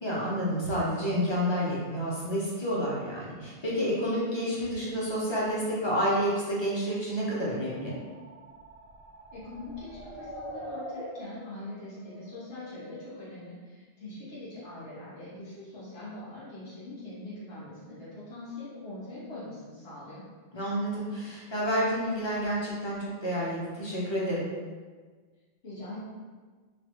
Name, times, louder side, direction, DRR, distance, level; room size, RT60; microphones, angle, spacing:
voice 1, 0.0-8.0 20.5-24.5, equal, 30° left, -6 dB, 0.7 m, -29 dB
sound 1, 7.4-13.2, equal, 50° right, 0.5 m, -45 dB
voice 2, 9.3-20.2 25.6-26.0, left 2 dB, 70° left, -10 dB, 1.5 m, -42 dB
3.2 x 2.3 x 3.0 m, 1.4 s
omnidirectional pair, 1.1 m